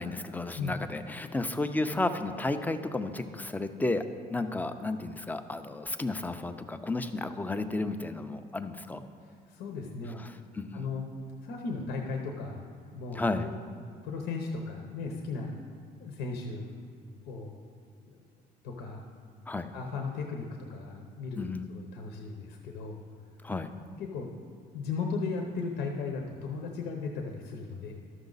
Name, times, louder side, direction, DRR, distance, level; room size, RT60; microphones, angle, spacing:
voice 1, 0.0-4.0 4.3-9.0 10.2-10.9 13.1-13.5 19.5-19.7 21.4-21.6 23.4-23.7, left 2 dB, 10° left, 8 dB, 0.5 m, -32 dB
voice 2, 9.2-10.2 10.7-11.1 11.4-12.6 12.9-13.5 14.0-15.5 16.0-16.8 17.2-17.6 18.0-18.2 18.6-19.0 19.7-21.4 21.7-23.0 24.0-24.3 24.7-27.9, left 4 dB, 85° left, 2 dB, 1.0 m, -36 dB
12.5 x 6.4 x 4.0 m, 2.1 s
cardioid pair, 110°, 17 cm